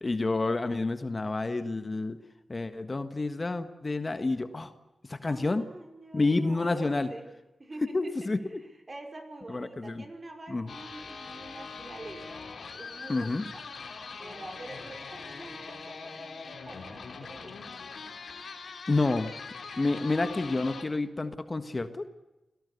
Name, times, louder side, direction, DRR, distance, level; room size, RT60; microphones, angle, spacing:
voice 1, 0.0-2.2 2.5-4.7 5.1-5.7 6.1-7.1 7.9-8.6 9.5-10.0 10.5-10.7 13.1-13.4 18.9-19.3 19.8-22.1, left 3 dB, 35° left, 10 dB, 1.5 m, -29 dB
voice 2, 5.3-7.3 7.6-8.3 8.6-12.5 12.7-13.6 14.2-17.6, right 2 dB, 35° right, 5 dB, 5.2 m, -46 dB
sound 1, 10.7-20.8, left 4 dB, 75° left, 3.2 m, -42 dB
27.0 x 18.0 x 8.3 m, 1.0 s
cardioid pair, 70°, 0 cm